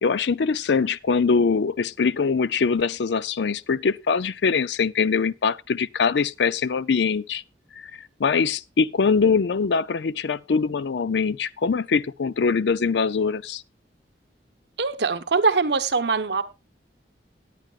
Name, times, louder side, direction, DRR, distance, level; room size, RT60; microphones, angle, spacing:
voice 1, 0.0-7.4 7.9-13.6, left 5 dB, 75° left, 0.5 m, -23 dB
voice 2, 14.8-16.4, right 4 dB, 70° right, 1.0 m, -22 dB
18.0 x 9.4 x 2.4 m
head